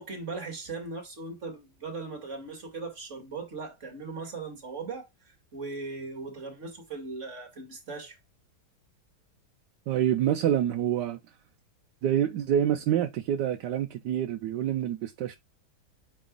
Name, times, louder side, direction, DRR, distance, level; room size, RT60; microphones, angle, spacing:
voice 1, 0.0-8.2, right 3 dB, 45° right, 2.3 m, -39 dB
voice 2, 9.9-11.2 12.0-15.4, right 10 dB, 80° right, 1.3 m, -27 dB
9.1 x 4.9 x 2.3 m
omnidirectional pair, 1.8 m